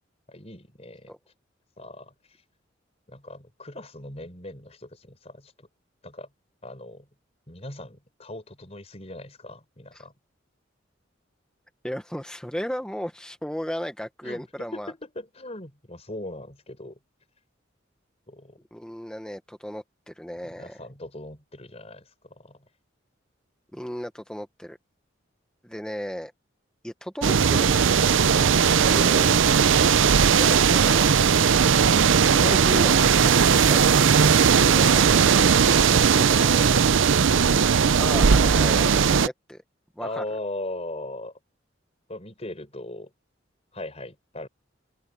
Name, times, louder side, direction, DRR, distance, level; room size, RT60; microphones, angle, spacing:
voice 1, 0.3-1.1 1.8-2.1 3.1-5.7 6.0-6.3 6.6-7.1 7.5-10.1 14.2-17.0 18.3-18.6 20.4-22.7 36.5-37.0 40.0-41.3 42.1-43.1 43.7-44.5, left 1 dB, 35° left, 4.7 m, -39 dB
voice 2, 11.8-14.9 18.7-20.9 23.7-24.8 25.6-26.3 26.8-29.3 30.3-31.1 32.3-34.1 34.6-36.6 38.0-39.6 40.0-40.2, equal, 5° left, 1.1 m, -35 dB
sound 1, 27.2-39.3, right 6 dB, 80° right, 0.6 m, -18 dB
open air
head